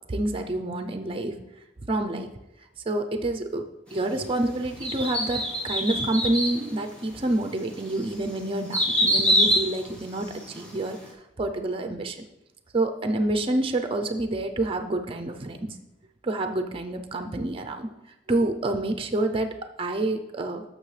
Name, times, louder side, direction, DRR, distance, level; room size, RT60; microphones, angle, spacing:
voice 1, 0.1-1.4 1.9-2.3 2.9-3.6 3.9-12.2 12.7-15.8 16.2-17.9 18.3-20.6, right 2 dB, 30° right, 6 dB, 0.6 m, -28 dB
sound 1, 4.8-6.6 7.2-7.3 7.9-10.7 11.0-11.1, equal, 5° left, 1.7 m, -24 dB
11.5 x 6.6 x 3.3 m, 0.92 s
head